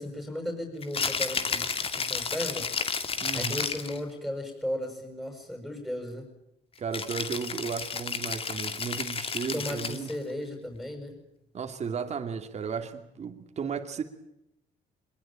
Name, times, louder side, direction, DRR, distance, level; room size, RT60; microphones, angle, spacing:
voice 1, 0.0-2.7 3.3-6.2 9.5-11.2, left 1 dB, 5° left, 6.5 m, -35 dB
Rattle (instrument), 0.8-4.0 6.9-10.2, left 5 dB, 35° left, 2.4 m, -32 dB
voice 2, 3.2-3.6 6.8-10.1 11.5-14.0, right 6 dB, 40° right, 2.6 m, -34 dB
23.5 x 22.0 x 8.9 m
cardioid pair, 110°, 17 cm